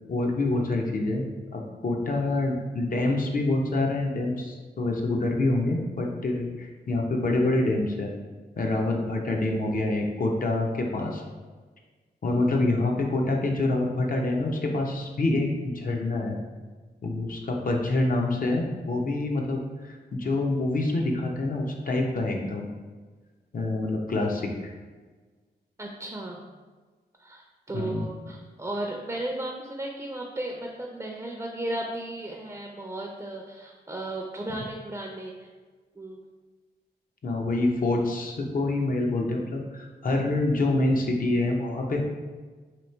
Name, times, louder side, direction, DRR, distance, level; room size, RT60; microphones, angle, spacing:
voice 1, 0.1-1.2 1.5-8.1 8.6-11.2 12.2-16.4 17.0-22.7 23.5-24.7 27.7-28.0 37.2-42.0, left 2 dB, 55° left, 1 dB, 0.7 m, -26 dB
voice 2, 25.8-26.4 27.2-35.5 36.0-36.2, right 1 dB, 15° right, 0 dB, 0.5 m, -35 dB
3.0 x 2.8 x 4.3 m, 1.4 s
cardioid pair, 75°, 17 cm